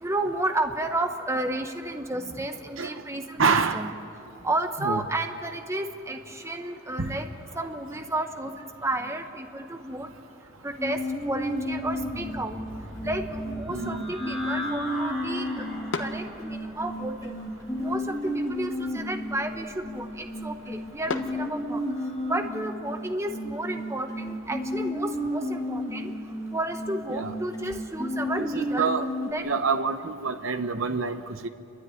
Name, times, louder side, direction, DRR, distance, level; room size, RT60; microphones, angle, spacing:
voice 1, 0.0-3.4 3.7-3.9 4.4-7.3 7.5-10.1 10.6-12.6 13.0-15.7 15.9-17.3 17.7-18.1 18.5-21.8 22.3-26.1 26.5-28.9 29.3-29.4, right 1 dB, 15° right, 6 dB, 1.0 m, -32 dB
voice 2, 3.4-3.9 4.8-5.0 7.0-7.2 13.7-14.1 27.1-27.3 28.5-29.1 29.4-31.5, right 5 dB, 75° right, 8 dB, 1.0 m, -27 dB
sound 1, 10.5-22.4, left 1 dB, ahead, 7.1 m, -42 dB
sound 2, 10.8-29.3, equal, 20° left, 2.8 m, -33 dB
sound 3, 12.2-22.2, left 3 dB, 65° left, 1.4 m, -43 dB
30.0 x 13.0 x 9.8 m, 2.6 s
head